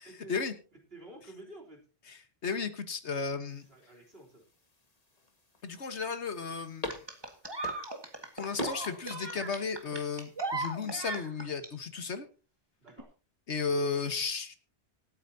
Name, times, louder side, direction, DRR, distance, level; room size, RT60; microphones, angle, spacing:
voice 1, 0.0-0.4 0.9-1.8 3.5-4.5 12.8-13.1, right 2 dB, 60° right, -1 dB, 3.9 m, -50 dB
voice 2, 2.1-3.7 5.6-6.9 8.4-12.3 13.5-14.5, left 5 dB, 75° left, 9 dB, 1.7 m, -34 dB
sound 1, 3.5-11.2, left 1 dB, 35° left, 1.9 m, -46 dB
sound 2, 6.9-11.7 12.9-13.0, right 2 dB, 20° right, 1.8 m, -37 dB
25.5 x 9.1 x 2.8 m, 0.35 s
omnidirectional pair, 1.2 m